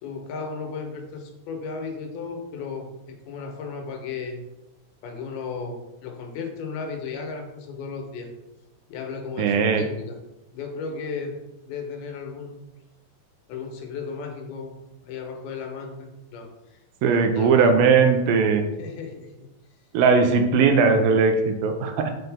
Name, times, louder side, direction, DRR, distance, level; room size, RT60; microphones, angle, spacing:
voice 1, 0.0-4.4 5.0-8.3 8.9-10.2 10.5-11.4 11.7-12.6 13.5-14.8 15.0-16.5 17.1-17.6 18.8-19.5, left 5 dB, 85° left, 3 dB, 2.9 m, -35 dB
voice 2, 9.4-9.8 17.0-18.7 19.9-22.1, right 5 dB, 80° right, 6 dB, 2.4 m, -19 dB
7.8 x 5.6 x 3.4 m, 0.96 s
omnidirectional pair, 4.2 m